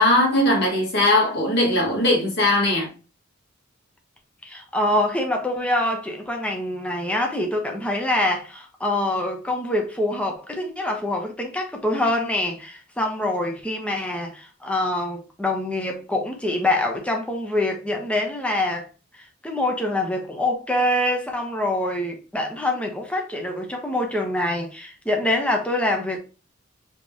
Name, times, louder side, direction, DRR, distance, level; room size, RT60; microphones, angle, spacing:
voice 1, 0.0-2.9, left 1 dB, 60° left, 1.9 m, -19 dB
voice 2, 4.4-18.9 19.1-26.2, left 1 dB, 5° left, 1.0 m, -25 dB
5.1 x 3.1 x 2.9 m
head